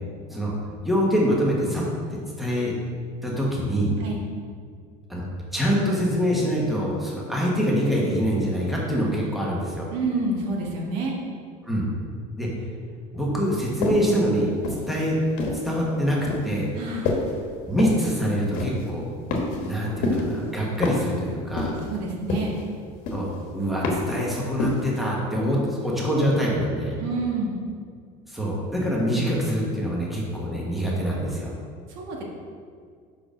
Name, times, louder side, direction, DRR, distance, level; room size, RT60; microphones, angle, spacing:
voice 1, 0.8-1.8 2.4-2.7 3.2-3.9 5.1-5.2 5.5-9.9 11.6-11.8 12.4-12.5 13.1-14.5 14.9-15.2 15.6-16.2 16.4-16.7 17.7-19.1 19.6-21.8 23.1-27.0 28.3-31.5, equal, ahead, -4 dB, 1.1 m, -25 dB
voice 2, 9.9-11.2 16.7-17.2 21.9-22.5 27.0-27.6 31.9-32.2, right 2 dB, 80° right, -1 dB, 1.4 m, -28 dB
sound 1, 13.8-14.1 14.6-15.7 16.3-16.5 17.0-17.4 17.8-18.1 18.5-18.9 19.3-19.8 20.0-20.4 20.8-21.2 21.6-21.9 22.3-22.7 23.1-23.4 23.8-24.2 24.6-24.9, left 3 dB, 65° left, 1.2 m, -27 dB
5.1 x 4.7 x 6.1 m, 2.1 s
cardioid pair, 155°, 16 cm